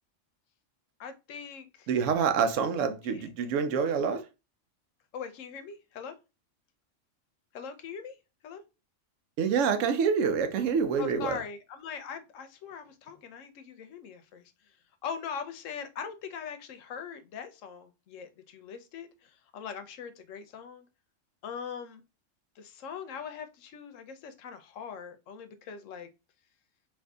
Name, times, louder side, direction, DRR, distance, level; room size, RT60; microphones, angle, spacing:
voice 1, 1.0-1.9 3.0-3.3 3.8-3.9 5.1-6.2 7.5-8.2 8.4-8.6 11.0-14.5 15.0-20.9 21.4-22.0 22.6-26.1, left 7 dB, 85° left, 1.0 m, -41 dB
voice 2, 1.9-4.2 9.4-11.4, right 6 dB, 80° right, 0.9 m, -27 dB
2.7 x 2.6 x 3.4 m
omnidirectional pair, 1.3 m